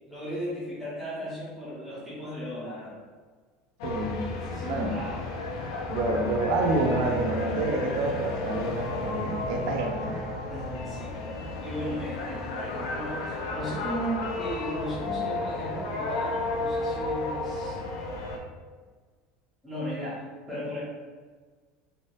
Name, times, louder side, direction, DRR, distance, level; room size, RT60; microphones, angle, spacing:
voice 1, 0.1-3.0 4.3-5.3 5.5-5.7 10.5-17.8 19.6-20.8, equal, 5° right, -11 dB, 0.9 m, -36 dB
sound 1, 3.8-18.4, left 2 dB, 90° left, 0.5 m, -32 dB
voice 2, 3.8-4.3 4.7-5.0 5.9-10.3, right 2 dB, 55° right, 2 dB, 0.5 m, -28 dB
3.2 x 2.7 x 2.6 m, 1.5 s
cardioid pair, 170°, 3 cm